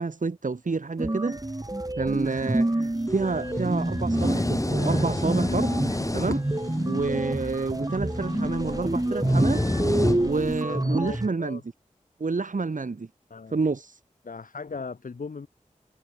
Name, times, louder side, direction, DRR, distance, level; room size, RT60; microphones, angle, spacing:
voice 1, 0.0-1.4 2.0-5.7 6.1-6.4 6.9-9.6 10.2-11.6 12.2-13.1 13.5-14.0, right 4 dB, 70° right, 3.4 m, -29 dB
sound 1, 1.0-11.3, right 1 dB, 25° right, 4.9 m, -28 dB
sound 2, 3.0-10.6, left 2 dB, 40° left, 7.6 m, -37 dB
sound 3, 3.1-10.6, left 1 dB, 25° left, 3.2 m, -30 dB
voice 2, 8.7-9.6 10.7-11.6 13.3-13.6 14.2-15.5, left 4 dB, 85° left, 2.9 m, -39 dB
cardioid pair, 40°, 14 cm